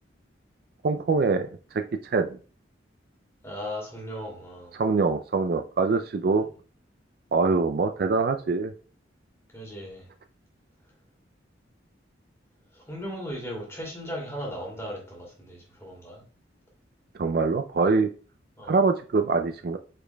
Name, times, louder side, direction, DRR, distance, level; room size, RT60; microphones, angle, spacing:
voice 1, 0.8-1.5 2.0-2.3 4.7-6.4 7.3-8.7 17.2-18.1 18.7-19.8, right 4 dB, 55° right, 8 dB, 0.4 m, -24 dB
voice 2, 3.4-4.8 9.5-10.0 12.7-16.2 18.6-18.8, equal, 15° left, -1 dB, 2.4 m, -37 dB
8.5 x 5.1 x 2.2 m, 0.39 s
head